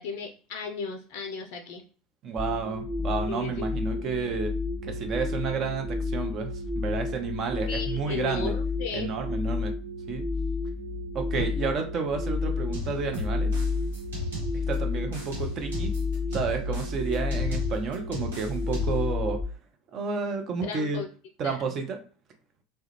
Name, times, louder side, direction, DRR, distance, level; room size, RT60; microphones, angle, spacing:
voice 1, 0.0-1.8 3.3-3.6 4.0-4.1 7.7-9.1 20.6-21.1 21.4-21.7, left 4 dB, 60° left, 3 dB, 0.3 m, -35 dB
voice 2, 2.2-4.5 4.8-8.5 8.9-9.7 10.1-10.3 11.1-13.5 14.5-15.9 16.3-19.4 19.9-21.0 21.4-22.0, right 5 dB, 45° right, 5 dB, 0.6 m, -31 dB
sound 1, 2.4-19.4, left 3 dB, 5° left, 1.1 m, -31 dB
sound 2, 12.7-14.8 15.1-19.1, left 1 dB, 80° right, 0.9 m, -35 dB
2.3 x 2.1 x 3.0 m, 0.39 s
figure-of-eight pair, 75°, 0 cm